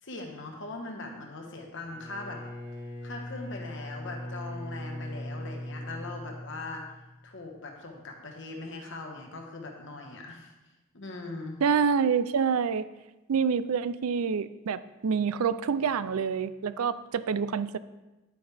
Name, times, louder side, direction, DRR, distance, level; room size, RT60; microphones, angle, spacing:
voice 1, 0.0-2.4 3.0-6.9 7.2-10.5 10.9-11.6, left 2 dB, 55° left, 2 dB, 1.2 m, -40 dB
Bowed string instrument, 1.8-7.2, left 1 dB, 10° right, 2.6 m, -40 dB
voice 2, 11.6-12.9 13.3-17.8, right 6 dB, 80° right, 15 dB, 0.4 m, -27 dB
9.9 x 9.2 x 3.4 m, 1.1 s
head